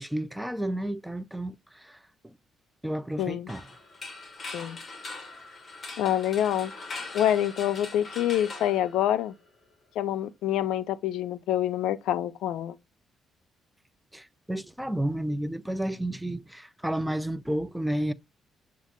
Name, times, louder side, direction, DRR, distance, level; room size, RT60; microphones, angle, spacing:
voice 1, 0.0-1.5 1.9-2.0 2.8-3.6 14.1-18.1, right 1 dB, 5° right, 0.4 m, -31 dB
voice 2, 3.2-3.5 4.5-4.8 6.0-6.7 7.1-9.3 10.0-12.8, left 11 dB, 85° left, 0.4 m, -26 dB
sound 1, 3.5-9.5, left 3 dB, 40° left, 1.5 m, -41 dB
6.9 x 2.4 x 2.9 m
cardioid pair, 90°, 0 cm